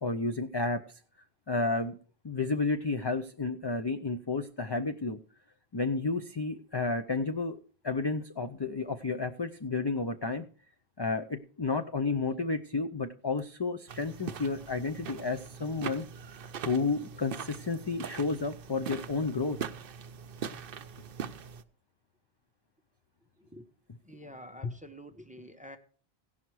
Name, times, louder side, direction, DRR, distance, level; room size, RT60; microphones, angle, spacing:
voice 1, 0.0-0.8 1.5-1.9 2.2-5.2 5.7-7.6 7.8-10.5 11.0-16.1 16.6-19.6 24.6-24.7, left 3 dB, 35° left, 6 dB, 0.4 m, -31 dB
sound 1, 13.9-21.6, right 7 dB, 65° right, 0.8 m, -41 dB
voice 2, 24.0-25.8, equal, 10° right, 8 dB, 0.7 m, -48 dB
17.0 x 5.7 x 4.6 m, 0.41 s
omnidirectional pair, 1.1 m